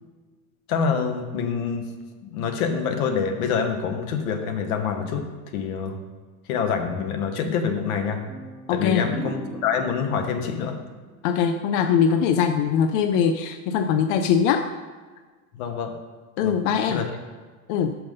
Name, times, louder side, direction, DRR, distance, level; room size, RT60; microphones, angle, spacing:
voice 1, 0.7-1.8 2.2-5.2 5.5-6.0 6.5-8.2 8.7-9.4 9.6-10.8 15.6-15.9 16.4-16.5 16.9-17.1, left 6 dB, 70° left, 5 dB, 1.1 m, -26 dB
sound 1, 8.3-11.9, equal, 5° right, 0.9 m, -39 dB
voice 2, 8.7-9.1 11.2-14.7 16.4-17.1 17.7-18.0, left 7 dB, 55° left, 7 dB, 0.5 m, -22 dB
5.8 x 5.2 x 5.4 m, 1.4 s
supercardioid pair, 115°, 44 cm